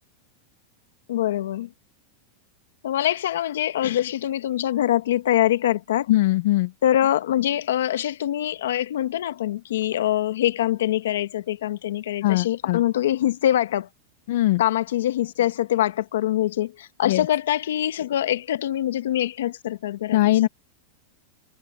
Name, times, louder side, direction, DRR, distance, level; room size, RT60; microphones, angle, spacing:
voice 1, 1.1-1.7 2.8-6.1 6.8-13.9 14.6-20.5, left 12 dB, 90° left, 1.1 m, -24 dB
voice 2, 6.1-6.7 12.2-12.8 14.3-14.6 17.1-17.3 20.1-20.5, left 16 dB, 60° left, 0.7 m, -20 dB
supercardioid pair, 165°, 0 cm